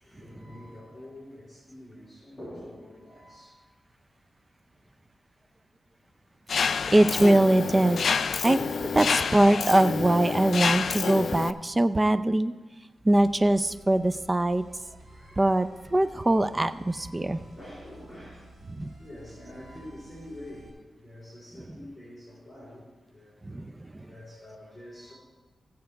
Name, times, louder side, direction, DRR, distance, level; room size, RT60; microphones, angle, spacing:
voice 1, 0.0-3.5 8.5-9.1 11.2-12.0 15.1-16.1 16.7-18.4 19.0-22.8 23.1-23.4 24.0-25.1, left 1 dB, 15° left, -8 dB, 4.1 m, -46 dB
Mechanisms, 6.5-11.5, left 5 dB, 70° left, 0.4 m, -28 dB
voice 2, 6.6-8.0 8.4-8.7 8.9-12.5 13.0-14.6 15.4-17.4 18.7-18.9 23.4-24.1, right 1 dB, 20° right, 11 dB, 0.5 m, -22 dB
sound 1, 13.1-20.7, right 2 dB, 50° right, 4.4 m, -52 dB
16.5 x 7.8 x 3.5 m, 1.2 s
wide cardioid pair, 95°, 0 cm